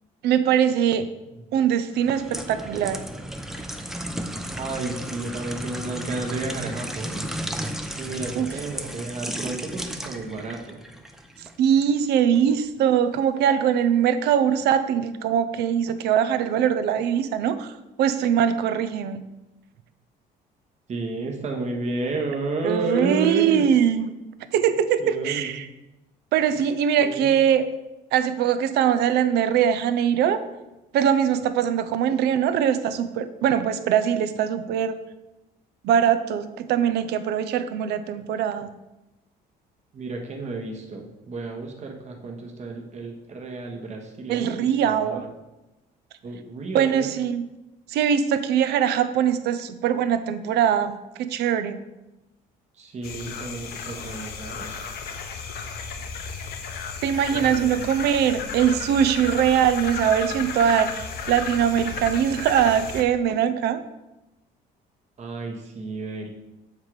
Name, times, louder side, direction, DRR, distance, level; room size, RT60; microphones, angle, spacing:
voice 1, 0.2-1.0 1.5-3.0 8.3-8.5 11.6-19.2 22.6-24.1 24.5-25.7 26.3-27.7 28.1-30.4 30.9-35.0 35.8-38.7 44.3-45.2 46.7-47.5 47.9-51.8 57.0-63.8, right 9 dB, 75° right, 11 dB, 0.5 m, -22 dB
sound 1, 1.9-11.9 12.3-12.5, right 1 dB, ahead, 0.5 m, -34 dB
voice 2, 4.6-7.2 8.0-10.8 20.9-23.7 25.0-25.6 27.0-27.3 39.9-45.3 46.2-47.1 52.8-54.8 57.3-57.9 65.2-66.3, right 3 dB, 40° right, 1 dB, 1.2 m, -32 dB
sound 2, 53.0-63.0, left 5 dB, 65° left, 0.8 m, -34 dB
7.4 x 3.7 x 4.7 m, 0.99 s
cardioid pair, 110°, 17 cm